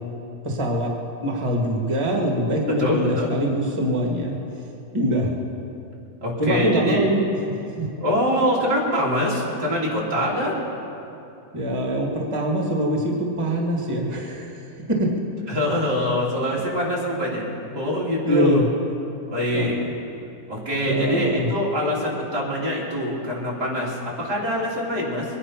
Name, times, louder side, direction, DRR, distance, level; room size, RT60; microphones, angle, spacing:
voice 1, 0.4-0.9 1.2-4.4 4.9-5.3 6.4-7.3 7.7-7.9 11.5-15.1 18.2-18.6 19.5-19.9 20.8-21.6, right 1 dB, 55° right, 0 dB, 0.3 m, -23 dB
voice 2, 2.7-3.3 6.2-7.2 8.0-10.6 15.5-17.4 17.7-18.6 19.3-19.7 20.5-25.3, left 1 dB, 30° right, -5 dB, 3.5 m, -24 dB
23.0 x 9.9 x 5.8 m, 2.8 s
omnidirectional pair, 3.7 m